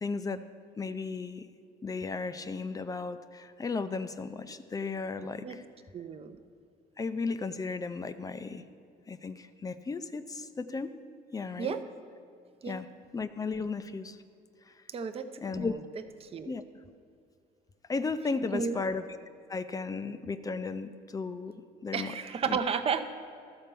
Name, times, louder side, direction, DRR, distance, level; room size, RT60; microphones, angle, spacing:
voice 1, 0.0-0.4 0.8-1.5 1.8-5.6 7.0-8.6 9.1-10.9 11.3-11.8 12.7-12.9 13.1-14.2 14.7-14.8 15.4-15.7 16.5-16.6 17.9-19.0 19.5-21.5 21.8-22.1 22.5-22.6, left 4 dB, 20° left, 12 dB, 0.4 m, -35 dB
voice 2, 5.9-6.4 11.6-11.8 12.6-12.8 14.9-15.3 15.5-15.8 16.2-16.5 18.5-18.8 21.9-23.0, right 6 dB, 35° right, 9 dB, 0.6 m, -32 dB
13.0 x 4.4 x 6.8 m, 2.3 s
cardioid pair, 110°, 17 cm